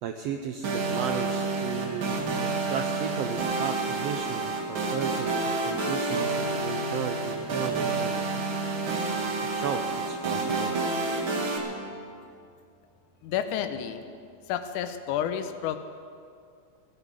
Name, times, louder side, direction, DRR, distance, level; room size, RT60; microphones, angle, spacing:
voice 1, 0.0-2.1 2.4-8.4 9.4-10.7, right 7 dB, 80° right, 6 dB, 1.4 m, -35 dB
sound 1, 0.6-11.6, right 3 dB, 45° right, 2.3 m, -29 dB
voice 2, 13.2-14.0 14.5-15.8, left 9 dB, 85° left, 8 dB, 2.3 m, -30 dB
16.5 x 12.0 x 6.5 m, 2.4 s
omnidirectional pair, 3.5 m